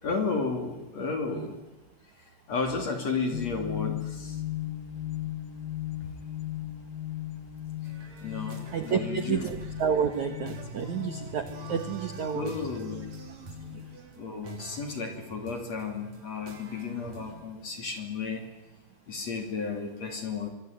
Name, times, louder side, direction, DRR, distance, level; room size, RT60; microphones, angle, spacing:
voice 1, 0.0-1.6 2.5-4.4 8.2-9.5 12.3-13.1 14.2-18.5 19.1-20.5, left 4 dB, 40° left, 5 dB, 3.2 m, -33 dB
sound 1, 3.3-14.1, left 12 dB, 75° left, 2.1 m, -38 dB
sound 2, 7.8-17.4, right 4 dB, 40° right, 3.7 m, -46 dB
voice 2, 8.7-12.5 13.7-13.9, right 7 dB, 65° right, 8 dB, 1.9 m, -30 dB
25.5 x 23.0 x 9.6 m, 1.1 s
omnidirectional pair, 5.6 m